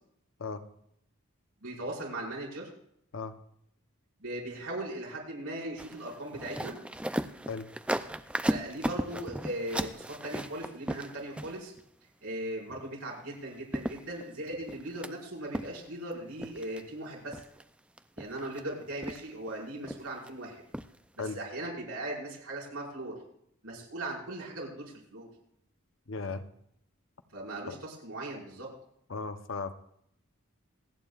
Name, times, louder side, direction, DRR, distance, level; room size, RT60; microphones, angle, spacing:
voice 1, 1.6-2.7 4.2-6.8 8.5-11.7 12.2-17.4 18.2-20.6 21.2-23.1 23.6-25.3 27.3-28.7, right 1 dB, 85° right, -3 dB, 5.3 m, -38 dB
sound 1, 5.8-11.8 13.3-13.4 13.7-15.1 15.5-16.1 16.4-16.8 17.3-17.6 18.0-18.6 19.0-19.5 19.8-20.3 20.7-20.9 21.3-21.4, right 1 dB, 5° right, 0.3 m, -36 dB
voice 2, 26.1-26.4 27.7-27.8 29.1-29.7, left 4 dB, 65° left, 10 dB, 0.8 m, -36 dB
27.0 x 9.1 x 2.4 m, 0.72 s
head